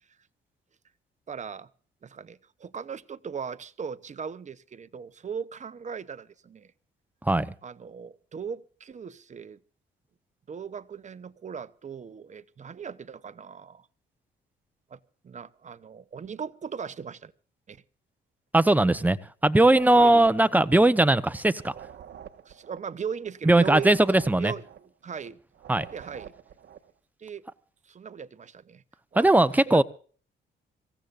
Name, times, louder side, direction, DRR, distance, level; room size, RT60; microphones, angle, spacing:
voice 1, 1.3-1.7 2.0-6.7 7.6-9.6 10.5-13.9 14.9-15.0 15.2-17.3 17.7-17.8 19.9-20.3 21.1-21.2 22.5-25.4 25.9-26.3 27.2-27.4 27.9-28.8 29.1-29.8, right 6 dB, 35° right, 0.9 m, -38 dB
voice 2, 7.2-7.5 18.5-19.2 19.4-21.7 23.4-24.5 25.7-25.9 29.2-29.8, right 2 dB, 10° right, 0.9 m, -19 dB
sound 1, 19.5-26.9, right 9 dB, 60° right, 1.4 m, -47 dB
25.5 x 16.0 x 2.6 m
cardioid pair, 90°, 20 cm